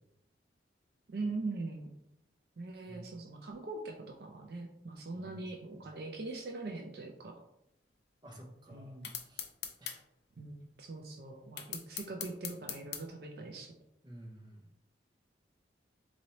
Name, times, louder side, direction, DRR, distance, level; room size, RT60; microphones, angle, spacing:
voice 1, 1.1-1.9 2.6-7.3 8.7-9.1 10.4-13.7, right 3 dB, 55° right, 2 dB, 0.4 m, -42 dB
voice 2, 5.1-5.9 8.2-9.0 9.2-9.5 9.8-10.0 14.0-14.7, right 1 dB, 25° right, 0 dB, 0.7 m, -52 dB
sound 1, 9.0-10.0 11.6-13.0, left 9 dB, 65° left, 0.5 m, -40 dB
4.0 x 3.1 x 2.8 m, 0.78 s
head